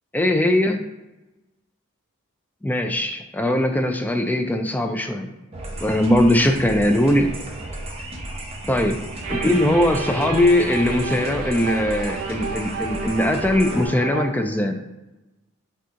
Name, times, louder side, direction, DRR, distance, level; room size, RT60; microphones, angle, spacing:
voice 1, 0.1-0.8 2.6-5.3 5.8-7.3 8.7-9.0 9.3-14.8, left 1 dB, 10° left, 5 dB, 0.3 m, -20 dB
sound 1, 5.5-13.9, right 1 dB, 30° right, 0.8 m, -34 dB
sound 2, 9.2-14.3, right 4 dB, 80° right, 0.5 m, -31 dB
6.0 x 2.3 x 2.8 m, 1.0 s
head